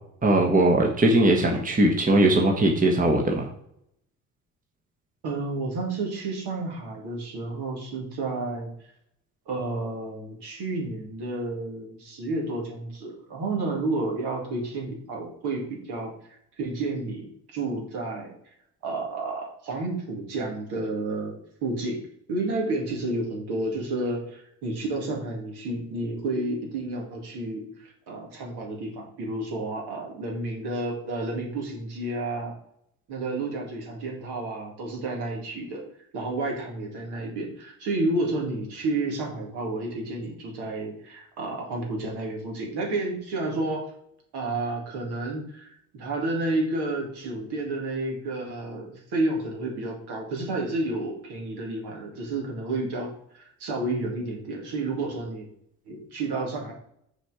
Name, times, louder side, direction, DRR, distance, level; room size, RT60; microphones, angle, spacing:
voice 1, 0.2-3.4, right 1 dB, 20° right, 1 dB, 1.3 m, -20 dB
voice 2, 5.2-8.7 9.5-18.3 18.8-22.0 22.3-32.5 33.1-35.8 36.1-43.9 44.3-45.7 45.9-55.5 55.9-56.7, right 2 dB, 55° right, -1 dB, 2.2 m, -31 dB
6.4 x 4.4 x 4.8 m, 0.71 s
figure-of-eight pair, 50°, 46 cm